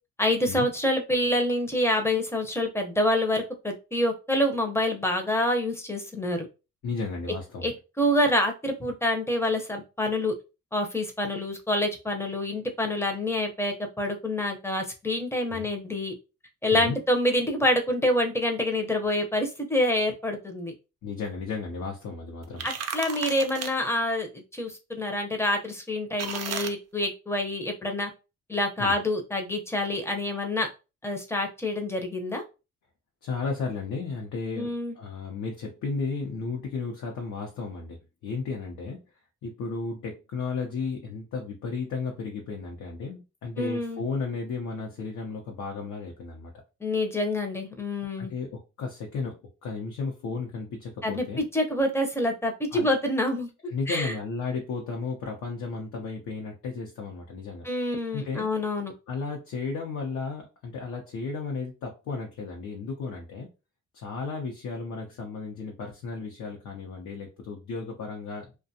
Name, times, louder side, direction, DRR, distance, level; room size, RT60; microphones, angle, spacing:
voice 1, 0.2-6.5 7.6-7.7 8.0-10.3 10.7-16.1 16.6-20.7 22.6-28.1 28.5-30.7 31.0-32.4 34.6-34.9 43.6-44.0 46.8-48.3 51.0-53.5 53.9-54.1 57.6-58.9, left 1 dB, 10° left, 4 dB, 0.6 m, -27 dB
voice 2, 6.8-7.7 15.5-15.7 16.7-17.0 21.0-22.7 28.8-29.0 33.2-39.0 39.4-46.5 48.2-51.4 52.7-52.9 53.7-57.6 58.1-58.5 59.1-63.5 63.9-68.5, left 4 dB, 70° left, 0 dB, 0.7 m, -34 dB
sound 1, 22.4-23.7 26.2-26.7, right 6 dB, 55° right, 0.5 m, -34 dB
2.5 x 2.3 x 2.6 m, 0.29 s
cardioid pair, 90°, 30 cm